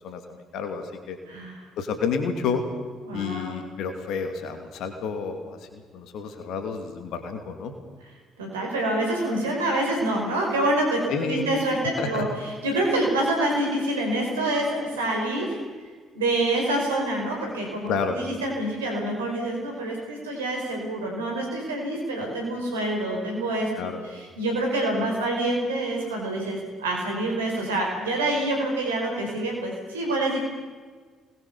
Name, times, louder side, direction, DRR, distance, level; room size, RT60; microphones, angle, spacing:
voice 1, 0.0-1.2 1.8-2.6 3.1-7.7 11.1-11.5 12.0-12.2 17.9-18.2 23.8-24.0, left 5 dB, 60° left, 6 dB, 2.6 m, -30 dB
voice 2, 1.3-1.6 3.0-3.5 8.4-15.6 16.1-23.7 24.0-30.4, right 1 dB, 85° right, 0 dB, 5.2 m, -26 dB
26.0 x 21.0 x 7.0 m, 1.5 s
figure-of-eight pair, 45°, 0 cm